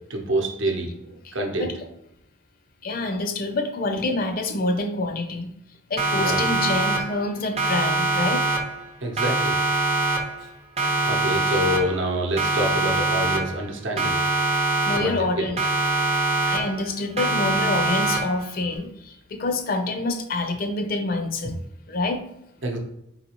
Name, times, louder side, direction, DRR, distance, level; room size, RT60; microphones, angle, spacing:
voice 1, 0.1-1.7 6.1-6.4 9.0-9.6 11.0-14.2 14.9-15.5 22.6-22.8, right 1 dB, 65° right, 3 dB, 0.8 m, -27 dB
voice 2, 2.8-5.5 5.9-8.4 11.5-11.6 14.8-15.6 16.5-21.5 21.9-22.2, left 2 dB, 45° left, 6 dB, 0.5 m, -27 dB
Siren, 6.0-7.3 7.6-8.9 9.2-10.5 10.8-12.1 12.4-13.7 14.0-15.3 15.6-16.9 17.2-18.5, right 2 dB, 30° right, 0.6 m, -24 dB
4.0 x 3.9 x 2.9 m, 0.81 s
head